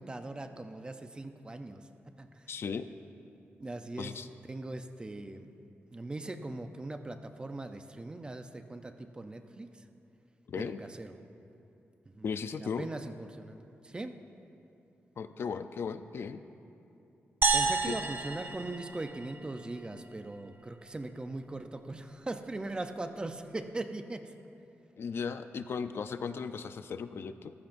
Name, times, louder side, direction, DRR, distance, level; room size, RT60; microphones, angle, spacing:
voice 1, 0.0-1.9 2.2-2.5 3.6-4.1 4.5-5.5 5.9-9.8 10.6-11.2 12.1-12.3 12.6-14.2 17.5-24.3, right 2 dB, 20° right, 7 dB, 0.6 m, -40 dB
voice 2, 2.5-2.9 4.0-4.3 10.5-10.8 12.2-12.9 15.2-16.4 17.9-18.0 25.0-27.5, left 6 dB, 60° left, 10 dB, 0.5 m, -36 dB
sound 1, 17.4-19.9, right 4 dB, 55° right, 0.8 m, -30 dB
25.0 x 14.5 x 2.6 m, 2.8 s
wide cardioid pair, 150°, 5 cm